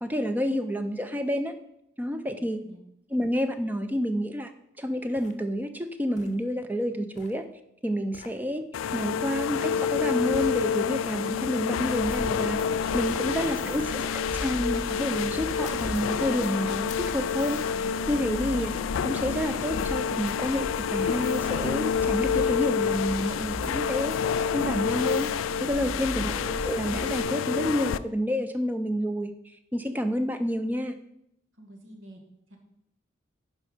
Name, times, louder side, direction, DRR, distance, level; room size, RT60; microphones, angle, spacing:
voice 1, 0.0-1.5 2.0-2.6 3.1-4.5 4.8-7.4 7.8-8.6 8.9-12.6 12.9-18.7 19.0-24.1 24.5-25.3 25.6-26.3 26.6-29.3 29.7-31.0, equal, 10° right, 8 dB, 0.5 m, -29 dB
voice 2, 2.4-2.8 12.9-13.8 31.5-32.2 32.5-32.6, equal, 80° right, 2 dB, 1.8 m, -48 dB
sound 1, 4.4-4.5 5.2-5.4 6.2-6.4 7.1-7.4 8.1-8.4 9.7-9.9 10.7-10.9 11.8-12.1 12.9-13.2 14.0-14.2 15.6-16.0 16.9-17.3, left 3 dB, 40° left, 0.7 m, -46 dB
sound 2, 8.7-28.0, left 7 dB, 90° left, 0.3 m, -28 dB
sound 3, 11.9-27.2, equal, 55° right, 4.0 m, -39 dB
9.6 x 5.3 x 5.0 m, 0.80 s
head